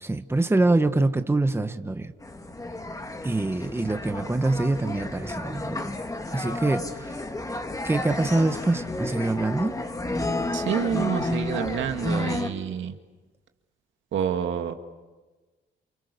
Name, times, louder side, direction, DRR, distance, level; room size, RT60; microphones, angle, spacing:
voice 1, 0.0-2.1 3.2-5.9 6.3-7.1 7.8-9.7, right 2 dB, 10° right, 8 dB, 1.4 m, -25 dB
sound 1, 2.2-12.5, left 2 dB, 15° left, 2.3 m, -31 dB
voice 2, 10.5-12.9 14.1-14.7, right 8 dB, 70° right, 6 dB, 2.2 m, -28 dB
29.0 x 29.0 x 6.9 m, 1.3 s
cardioid pair, 90°, 20 cm